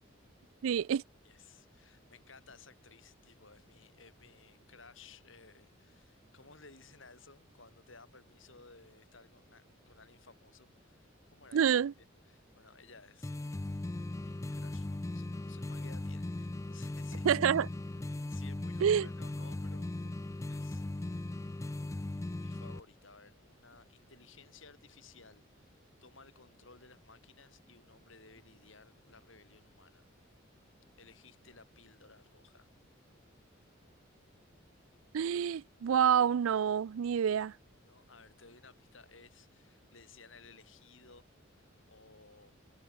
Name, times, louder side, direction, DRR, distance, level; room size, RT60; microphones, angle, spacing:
voice 1, 0.6-1.0 11.5-11.9 17.2-17.7 18.8-19.1 35.1-37.5, right 8 dB, 85° right, 0.4 m, -27 dB
voice 2, 1.2-11.8 12.3-13.8 14.2-17.3 18.1-20.0 20.5-20.9 22.4-30.1 31.0-32.7 37.8-42.5, left 4 dB, 75° left, 6.3 m, -58 dB
sound 1, 13.2-22.8, left 2 dB, 15° left, 0.3 m, -38 dB
head